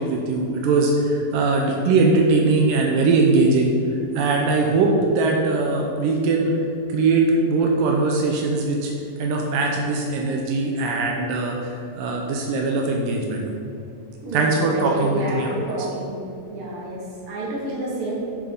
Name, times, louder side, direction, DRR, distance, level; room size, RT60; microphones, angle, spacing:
voice 1, 0.0-3.7 4.1-6.5 6.9-8.9 9.2-13.5 14.3-15.5, right 3 dB, 85° right, 0 dB, 2.4 m, -21 dB
voice 2, 14.2-16.2 16.5-18.1, right 1 dB, 45° right, -6 dB, 2.5 m, -30 dB
9.1 x 6.7 x 4.0 m, 2.8 s
omnidirectional pair, 3.8 m